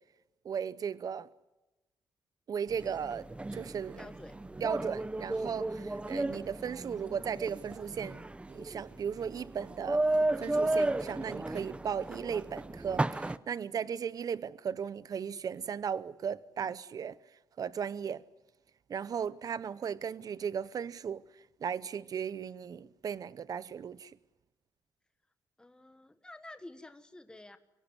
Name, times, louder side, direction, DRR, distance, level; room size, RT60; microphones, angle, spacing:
voice 1, 0.4-1.3 2.5-4.1 4.6-17.2 17.6-18.2 18.9-21.2 21.6-24.2, right 7 dB, 50° right, 0.7 m, -36 dB
sound 1, 2.7-13.4, right 2 dB, 15° right, 0.7 m, -34 dB
voice 2, 4.0-4.4 25.6-27.6, left 2 dB, 10° left, 1.3 m, -50 dB
24.5 x 16.5 x 9.7 m
cardioid pair, 105°, 8 cm